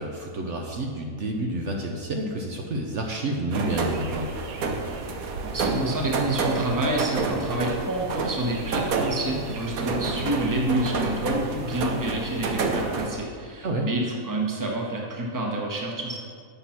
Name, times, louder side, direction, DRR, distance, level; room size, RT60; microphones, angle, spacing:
voice 1, 0.0-4.3 13.6-13.9, right 1 dB, 60° right, 1 dB, 1.0 m, -29 dB
Rain on Van Roof, 3.5-13.1, right 3 dB, 85° right, 1.3 m, -29 dB
voice 2, 5.4-16.2, right 1 dB, 15° right, -1 dB, 1.0 m, -28 dB
8.4 x 5.7 x 5.8 m, 2.1 s
omnidirectional pair, 1.5 m